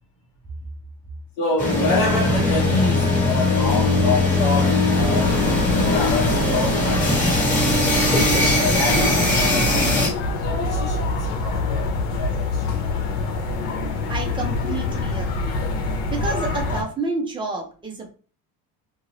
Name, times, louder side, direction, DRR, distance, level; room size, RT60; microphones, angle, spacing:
voice 1, 1.4-5.4 5.7-7.2 8.1-11.1 11.4-11.9 12.2-12.6, left 3 dB, 50° left, 1.3 m, -27 dB
sound 1, 1.6-10.1, left 2 dB, 20° left, 1.5 m, -20 dB
sound 2, 5.0-16.8, left 2 dB, 80° left, 1.1 m, -25 dB
voice 2, 14.1-15.6 16.1-18.1, right 3 dB, 10° right, 0.4 m, -29 dB
2.8 x 2.7 x 2.9 m
cardioid pair, 165°, 42 cm